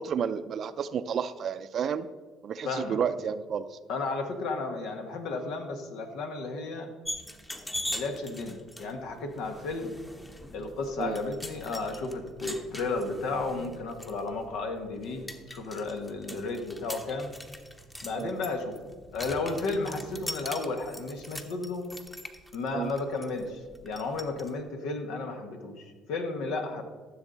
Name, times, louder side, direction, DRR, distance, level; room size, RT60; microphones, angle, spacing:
voice 1, 0.0-2.1 2.4-3.8 11.0-11.2 18.2-18.3 22.7-22.9, right 7 dB, 55° right, 13 dB, 0.5 m, -31 dB
voice 2, 2.6-3.0 3.9-6.9 7.9-9.9 10.5-17.3 18.0-18.8 19.1-21.9 22.5-26.8, left 3 dB, 75° left, 5 dB, 1.4 m, -33 dB
sound 1, 7.0-24.5, left 1 dB, 15° left, 1.1 m, -42 dB
14.0 x 7.1 x 4.0 m, 1.5 s
supercardioid pair, 75°, 0 cm